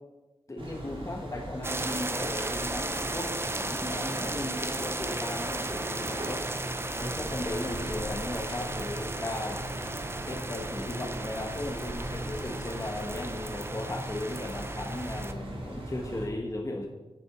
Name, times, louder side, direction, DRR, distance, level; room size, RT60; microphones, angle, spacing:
voice 1, 0.5-6.4 7.0-9.7 10.2-16.9, left 1 dB, 30° left, 1 dB, 1.2 m, -36 dB
sound 1, 0.6-16.3, right 1 dB, 60° right, 2.7 m, -39 dB
sound 2, 1.6-15.3, right 2 dB, 25° right, 0.7 m, -35 dB
9.4 x 6.0 x 5.3 m, 1.1 s
wide cardioid pair, 65°, 10 cm